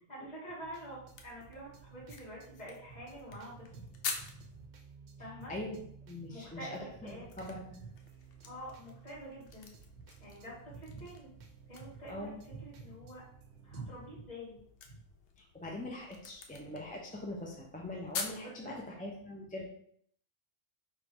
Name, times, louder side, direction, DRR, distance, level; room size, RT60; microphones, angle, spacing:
voice 1, 0.1-3.8 4.2-4.6 5.2-5.5 6.3-7.3 8.4-9.7 10.2-11.3 11.7-13.2 13.6-14.6 14.9-15.0 18.4-18.8, right 1 dB, 40° left, -8 dB, 2.1 m, -46 dB
sound 1, 0.6-14.1, right 6 dB, 65° right, 0.7 m, -57 dB
sound 2, 1.1-4.7 6.7-18.4, left 5 dB, 70° left, 0.8 m, -47 dB
voice 2, 5.5-7.9 12.1-12.4 15.5-18.7 19.0-19.7, left 1 dB, 10° left, -1 dB, 0.4 m, -42 dB
3.3 x 2.7 x 4.6 m, 0.66 s
omnidirectional pair, 1.1 m